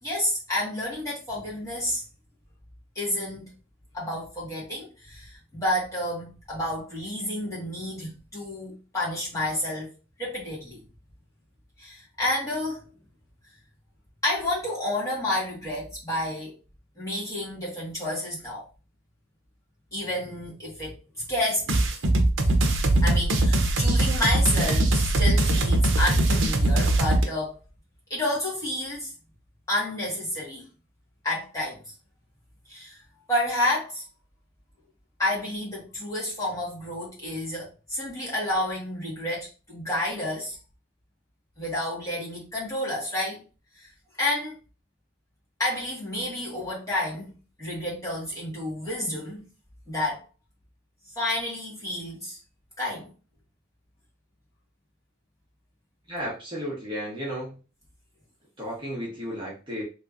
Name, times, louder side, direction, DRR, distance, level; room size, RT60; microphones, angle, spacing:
voice 1, 0.0-2.0 2.9-3.5 3.9-9.9 10.2-10.8 11.8-12.8 14.2-16.5 17.0-18.6 19.9-20.9 21.3-21.8 23.0-27.6 28.1-29.1 29.7-30.6 31.2-31.8 32.7-33.0 33.3-34.0 35.2-40.6 41.6-43.4 43.8-43.9 44.2-44.5 45.6-47.3 47.6-49.4 49.9-50.2 51.1-52.4 52.8-53.1, left 1 dB, 15° left, 1.6 m, -30 dB
sound 1, 21.7-27.2, right 2 dB, 75° right, 0.6 m, -21 dB
voice 2, 56.1-57.6 58.6-59.8, equal, 25° right, 1.0 m, -33 dB
3.2 x 2.9 x 2.5 m
head